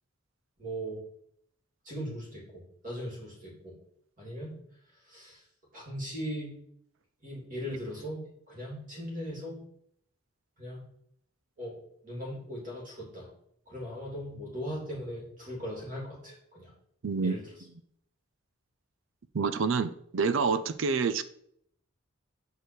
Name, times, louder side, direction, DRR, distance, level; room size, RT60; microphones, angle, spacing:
voice 1, 0.6-1.0 1.8-3.7 4.2-4.5 5.1-5.4 5.7-6.6 7.2-9.6 10.6-10.8 11.6-11.8 12.0-13.3 13.7-16.7 17.2-17.4, equal, 40° right, -4 dB, 2.9 m, -39 dB
voice 2, 17.0-17.4 19.3-21.2, right 5 dB, 65° right, 14 dB, 0.4 m, -27 dB
6.8 x 4.7 x 4.5 m, 0.68 s
head